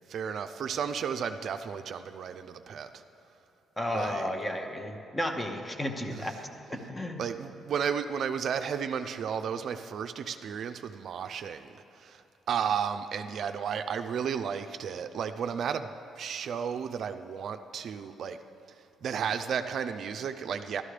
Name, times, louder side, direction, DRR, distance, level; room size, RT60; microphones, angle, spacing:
voice 1, 0.1-3.0 3.9-4.3 6.1-6.3 7.2-11.7 12.0-12.2 12.5-15.9 16.2-18.4 19.0-20.8, right 7 dB, 65° right, 8 dB, 0.4 m, -33 dB
voice 2, 3.8-6.3 6.7-7.2, left 1 dB, 15° left, 5 dB, 1.0 m, -33 dB
12.5 x 12.5 x 3.3 m, 2.8 s
cardioid pair, 90°, 0 cm